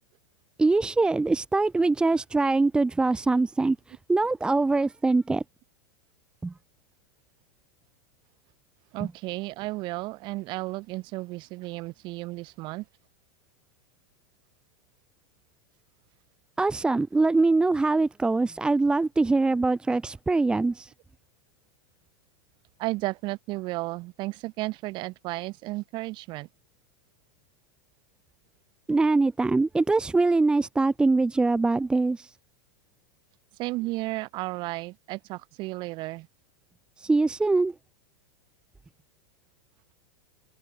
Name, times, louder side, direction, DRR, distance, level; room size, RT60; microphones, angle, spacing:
voice 1, 0.6-5.4 6.4-6.5 16.6-20.9 28.9-32.3 37.0-37.7, right 3 dB, 5° right, 1.3 m, -23 dB
voice 2, 8.9-12.8 22.8-26.5 33.6-36.3, right 21 dB, 40° right, 6.4 m, -33 dB
supercardioid pair, 160°, 13 cm